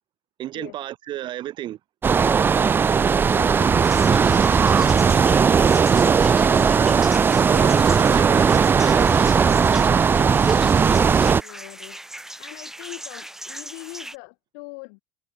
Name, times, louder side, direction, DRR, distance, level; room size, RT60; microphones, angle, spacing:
voice 1, 0.4-1.8 6.7-7.1 7.5-9.2, right 13 dB, 50° right, 4.2 m, -32 dB
sound 1, 2.0-11.4, right 6 dB, 20° right, 0.4 m, -17 dB
voice 2, 3.2-6.8 7.5-8.0 9.0-9.3 9.7-12.0 12.4-15.0, left 35 dB, 80° left, 3.6 m, -42 dB
sound 2, 3.8-14.2, right 1 dB, 5° right, 7.6 m, -38 dB
supercardioid pair, 125°, 10 cm